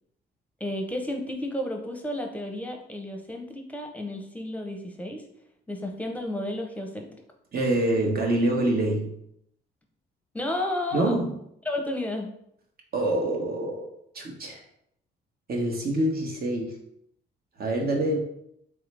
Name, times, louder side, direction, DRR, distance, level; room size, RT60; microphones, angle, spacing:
voice 1, 0.6-5.2 5.7-7.1 10.3-11.2 11.7-12.3, left 1 dB, 5° left, 3 dB, 0.8 m, -32 dB
voice 2, 7.5-9.2 10.9-11.4 12.9-13.9 14.1-14.6 15.5-16.8 17.6-18.2, right 1 dB, 50° right, 0 dB, 1.1 m, -26 dB
3.7 x 3.3 x 3.3 m, 0.74 s
cardioid pair, 90°, 20 cm